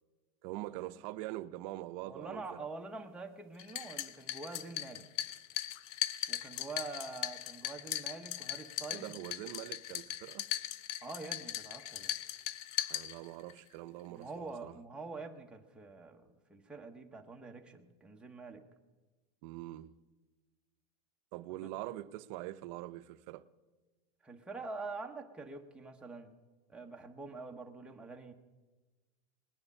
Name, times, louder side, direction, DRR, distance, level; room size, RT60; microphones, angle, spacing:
voice 1, 0.4-2.7 8.9-10.5 12.9-14.8 19.4-19.9 21.3-23.4, right 16 dB, 50° right, 0.6 m, -44 dB
voice 2, 2.0-5.1 6.3-9.2 11.0-12.1 14.1-18.6 21.5-21.6 24.2-26.3 26.7-28.3, right 3 dB, 5° right, 0.9 m, -45 dB
sound 1, 3.6-13.6, left 12 dB, 55° left, 0.6 m, -39 dB
19.5 x 9.7 x 5.4 m
supercardioid pair, 150°, 21 cm